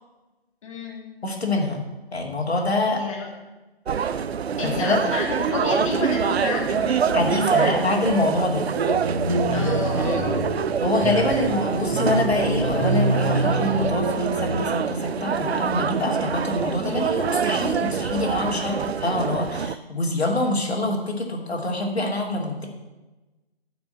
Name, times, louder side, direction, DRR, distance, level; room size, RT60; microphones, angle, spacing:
voice 1, 0.6-1.0 2.9-3.4 4.6-8.0 9.5-10.5, left 4 dB, 30° left, -1 dB, 1.8 m, -30 dB
voice 2, 1.2-1.8 2.1-3.0 4.0-4.1 4.6-5.0 7.1-8.6 10.8-22.7, left 2 dB, 90° left, 1 dB, 2.9 m, -25 dB
sound 1, 3.9-19.7, right 7 dB, 80° right, 0.6 m, -25 dB
sound 2, 8.7-14.6, right 1 dB, 10° right, 3.3 m, -26 dB
12.0 x 6.1 x 7.9 m, 1.1 s
hypercardioid pair, 165°, 31 cm